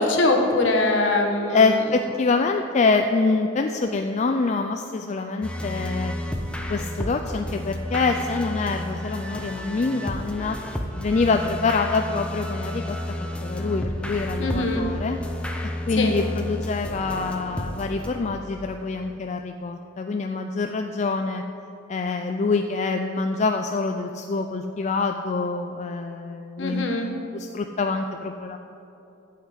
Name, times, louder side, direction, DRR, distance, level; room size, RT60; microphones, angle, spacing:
voice 1, 0.0-1.8 14.4-14.9 15.9-16.2 26.6-27.1, left 2 dB, 65° left, 1 dB, 1.4 m, -22 dB
voice 2, 1.5-6.1 6.7-10.6 11.0-15.2 15.9-21.4 21.9-28.6, left 4 dB, 35° left, 5 dB, 0.3 m, -25 dB
sound 1, 5.4-18.7, left 1 dB, 5° left, 0.7 m, -31 dB
11.5 x 5.7 x 8.1 m, 2.9 s
head